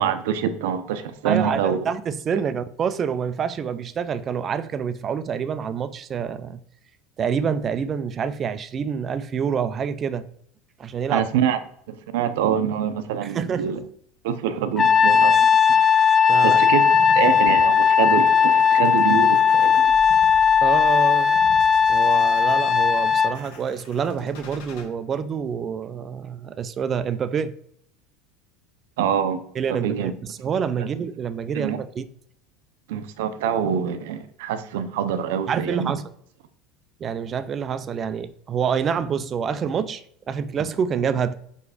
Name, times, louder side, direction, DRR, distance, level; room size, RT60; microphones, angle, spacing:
voice 1, 0.0-1.8 11.1-11.6 11.9-13.8 14.2-15.5 16.4-19.9 29.0-29.4 29.7-30.1 30.8-30.9 31.5-31.8 32.9-35.9, right 8 dB, 80° right, 0.7 m, -25 dB
voice 2, 1.2-6.6 7.2-10.3 10.8-11.2 13.2-13.9 16.3-16.6 20.6-21.3 21.9-27.5 29.5-32.1 35.5-36.0 37.0-41.3, right 7 dB, 30° right, 0.5 m, -27 dB
Trumpet, 14.8-23.3, left 7 dB, 20° left, 0.5 m, -17 dB
sound 1, 16.8-24.8, left 4 dB, 75° left, 1.6 m, -43 dB
5.0 x 4.6 x 4.9 m
supercardioid pair, 130°, 0 cm